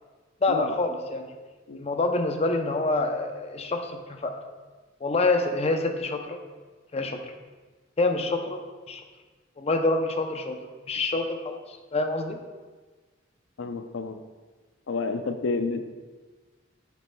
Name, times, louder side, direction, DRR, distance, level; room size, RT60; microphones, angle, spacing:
voice 1, 0.4-1.3 1.8-4.3 5.0-6.4 6.9-7.2 8.0-8.6 8.9-9.0 9.6-10.6 10.9-12.4, left 2 dB, 35° left, 5 dB, 0.6 m, -26 dB
voice 2, 13.6-14.2 14.9-15.9, left 3 dB, 85° left, 8 dB, 0.5 m, -30 dB
8.5 x 7.4 x 2.2 m, 1.3 s
head